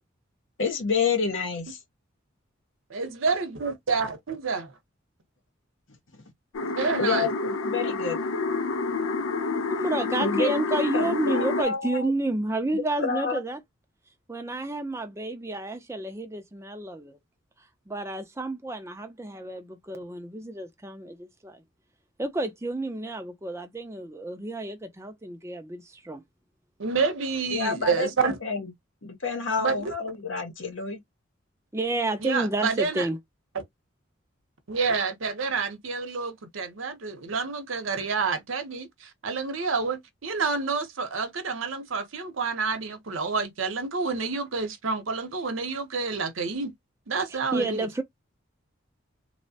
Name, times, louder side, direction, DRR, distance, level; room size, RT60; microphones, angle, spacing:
voice 1, 0.6-1.8 7.0-8.2 10.2-12.1 12.7-13.4 27.5-28.7 29.0-31.0 47.5-47.7, left 4 dB, 70° left, 0.9 m, -29 dB
voice 2, 2.9-4.7 6.6-7.3 26.8-28.3 29.6-29.9 32.2-33.1 34.7-38.9 39.2-46.7 47.1-47.8, right 4 dB, 75° right, 0.8 m, -28 dB
sound 1, 6.5-11.6, left 3 dB, 85° left, 0.5 m, -28 dB
voice 3, 9.7-13.6 14.3-17.2 17.9-21.6 22.2-26.2 31.7-33.2 47.3-48.0, right 2 dB, 15° right, 0.5 m, -30 dB
3.1 x 2.1 x 2.7 m
head